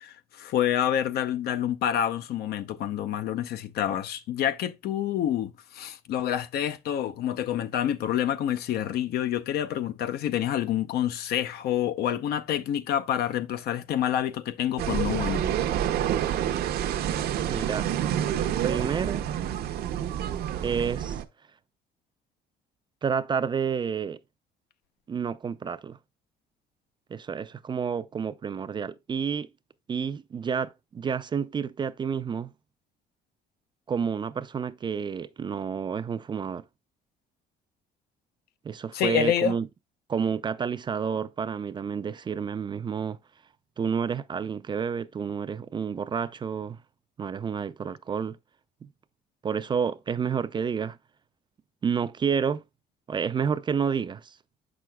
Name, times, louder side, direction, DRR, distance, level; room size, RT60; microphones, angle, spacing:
voice 1, 0.0-15.4 38.9-39.6, left 10 dB, 70° left, 0.6 m, -28 dB
sound 1, 14.8-21.2, right 10 dB, 65° right, 0.7 m, -28 dB
voice 2, 17.5-17.9 18.6-19.3 20.6-21.2 23.0-24.2 25.1-26.0 27.1-29.5 29.9-32.5 33.9-36.6 38.6-39.7 40.1-43.2 43.8-46.8 47.2-48.4 48.8-48.9 49.4-51.0 51.8-52.6 53.1-54.4, right 6 dB, 30° right, 0.4 m, -29 dB
7.5 x 6.1 x 2.2 m
cardioid pair, 110°, 17 cm